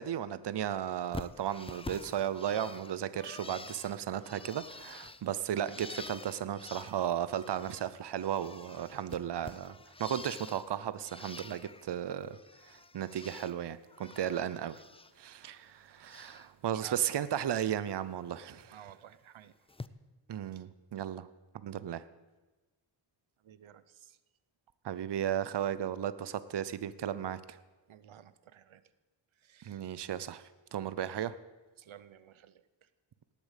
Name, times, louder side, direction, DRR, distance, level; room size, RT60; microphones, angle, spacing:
voice 1, 0.0-9.7 10.0-12.4 12.7-14.8 15.2-18.8 20.3-21.3 21.6-22.0 24.8-27.6 29.6-30.4 30.7-31.3, right 10 dB, 60° right, 15 dB, 0.7 m, -35 dB
Bird, 1.1-7.9 8.2-10.7 11.0-11.9 12.2-13.6 13.9-15.1 15.4-16.5 16.9-17.3 18.6-18.7 19.7-19.9, left 3 dB, 15° left, 0.4 m, -48 dB
voice 2, 18.7-19.5 20.5-20.6 23.4-24.2 27.9-28.8 29.4-29.8 31.8-32.6, right 10 dB, 90° right, 14 dB, 0.8 m, -54 dB
18.5 x 8.6 x 8.2 m, 1.2 s
wide cardioid pair, 120°, 47 cm